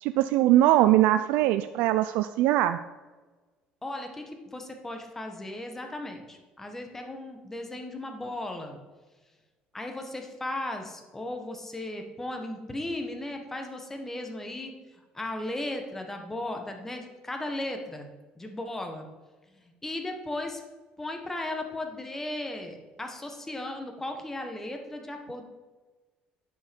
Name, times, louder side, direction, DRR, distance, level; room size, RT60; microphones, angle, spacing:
voice 1, 0.0-2.8, right 14 dB, 85° right, 10 dB, 0.3 m, -21 dB
voice 2, 3.8-8.8 9.7-18.1 18.4-19.0 19.5-20.6 21.0-25.4, left 1 dB, 10° left, 4 dB, 1.3 m, -36 dB
10.5 x 5.6 x 5.3 m, 1.3 s
cardioid pair, 125°, 3 cm